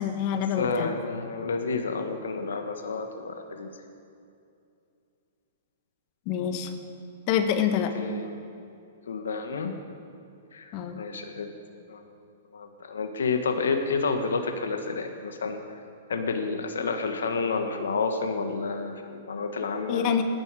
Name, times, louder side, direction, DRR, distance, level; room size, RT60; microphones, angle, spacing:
voice 1, 0.0-0.9 6.3-6.7 7.3-7.9 10.7-11.0 19.9-20.2, left 8 dB, 45° left, 6 dB, 1.5 m, -26 dB
voice 2, 0.6-3.7 7.9-8.3 9.1-9.7 10.5-11.5 11.9-12.0 12.5-15.6 16.1-20.2, left 4 dB, 80° left, 5 dB, 1.3 m, -30 dB
18.5 x 10.5 x 4.8 m, 2.6 s
hypercardioid pair, 125°, 0 cm